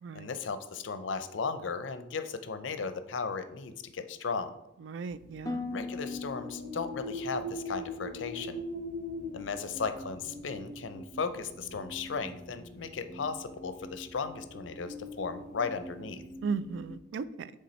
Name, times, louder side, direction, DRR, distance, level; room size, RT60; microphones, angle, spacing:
voice 1, 0.1-4.5 5.7-8.6 9.3-16.2, left 5 dB, 75° left, 11 dB, 0.5 m, -36 dB
voice 2, 4.8-5.7 16.4-17.5, right 5 dB, 70° right, 15 dB, 0.3 m, -36 dB
sound 1, 5.1-17.0, left 1 dB, 50° right, 0.7 m, -43 dB
Harp, 5.5-9.6 9.9-10.4 10.9-11.2, left 3 dB, 20° left, 0.4 m, -42 dB
6.7 x 3.6 x 4.2 m, 0.89 s
head